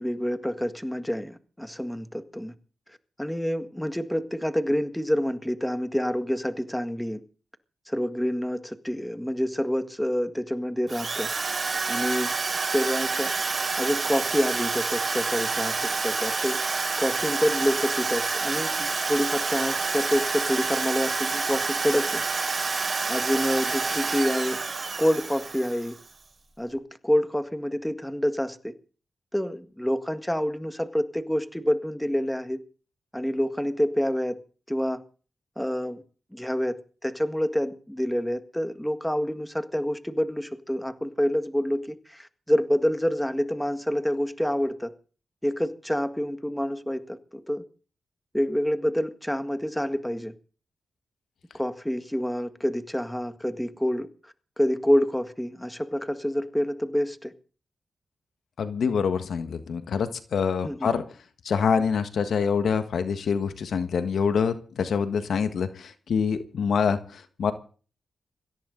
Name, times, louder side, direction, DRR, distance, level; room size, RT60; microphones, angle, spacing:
voice 1, 0.0-2.5 3.2-7.2 7.9-11.3 11.9-12.3 12.6-13.3 13.8-16.6 17.0-22.4 23.1-24.6 25.0-26.0 26.6-28.7 29.3-32.6 33.1-34.4 34.7-35.0 35.6-36.0 36.3-44.9 45.4-47.6 48.3-50.3 51.5-54.1 54.6-57.3 60.6-60.9, equal, 5° left, 1.8 m, -27 dB
Drill, 10.9-26.1, right 4 dB, 45° right, 6.4 m, -28 dB
voice 2, 58.6-61.0 61.4-67.5, left 6 dB, 75° left, 1.5 m, -26 dB
21.5 x 16.5 x 4.0 m
cardioid pair, 75°, 0 cm